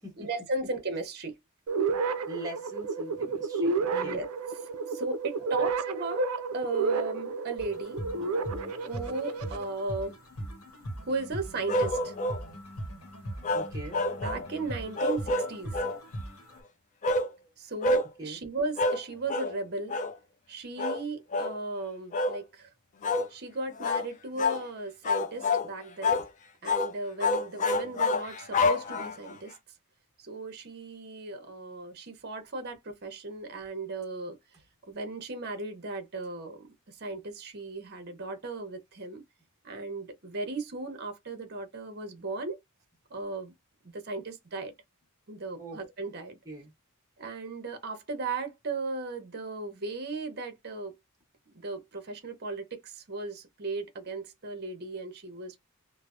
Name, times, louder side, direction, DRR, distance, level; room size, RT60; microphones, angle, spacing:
voice 1, 0.2-1.4 3.9-4.3 4.6-8.1 8.8-10.2 11.1-12.1 14.2-15.8 17.6-20.0 20.5-22.7 23.3-26.3 26.6-29.6 30.2-34.4 34.9-39.2 39.6-42.6 43.1-43.5 43.9-44.7 45.3-46.4 47.2-51.0 51.5-55.6, right 3 dB, 45° right, 0.7 m, -36 dB
sound 1, 1.7-9.6, right 4 dB, 80° right, 0.4 m, -31 dB
voice 2, 2.3-4.2 5.4-5.7 13.5-14.0 18.2-18.4 45.6-45.8 46.5-46.7, right 1 dB, 15° right, 1.0 m, -42 dB
sound 2, 7.6-16.6, right 1 dB, 85° left, 1.0 m, -40 dB
sound 3, 11.7-12.4 13.4-14.5 15.0-16.0 17.0-17.3 17.8-18.1 18.8-19.0 19.3-19.5 19.9-20.1 20.8-21.0 21.3-21.6 22.1-22.4 23.0-23.3 23.8-24.1 24.4-24.6 25.0-25.7 26.0-26.3 26.6-26.9 27.2-29.3, left 2 dB, 35° left, 0.3 m, -27 dB
3.1 x 2.0 x 2.5 m
head